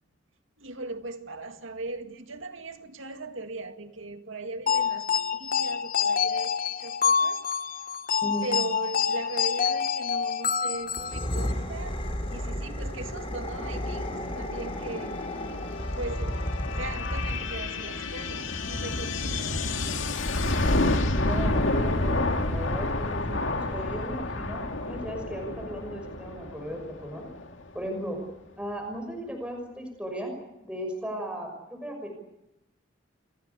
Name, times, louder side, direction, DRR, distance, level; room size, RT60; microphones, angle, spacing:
voice 1, 0.6-7.4 7.8-7.9 8.4-12.0 12.3-15.2 15.9-16.4 16.7-19.6, right 2 dB, 85° right, 2.2 m, -38 dB
sound 1, 4.7-11.5, left 6 dB, 45° left, 0.8 m, -27 dB
voice 2, 8.2-8.5 21.1-27.3 27.7-28.2 28.6-30.3 30.6-32.1, equal, 5° right, 6.2 m, -36 dB
sound 2, 10.9-17.7, equal, 30° left, 4.2 m, -33 dB
sound 3, 14.2-27.7, left 2 dB, 75° left, 2.2 m, -29 dB
28.5 x 18.5 x 8.3 m
head